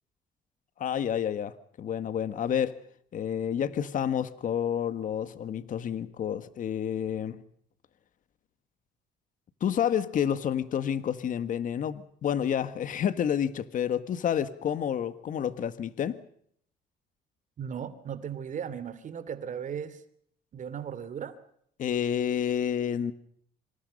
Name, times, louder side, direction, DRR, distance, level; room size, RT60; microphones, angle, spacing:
voice 1, 0.8-2.8 3.1-7.4 9.6-16.2 21.8-23.1, left 9 dB, 50° left, 1.7 m, -29 dB
voice 2, 17.6-20.0 20.5-21.4, right 8 dB, 50° right, 2.9 m, -36 dB
26.5 x 26.0 x 5.4 m
cardioid pair, 110°, 17 cm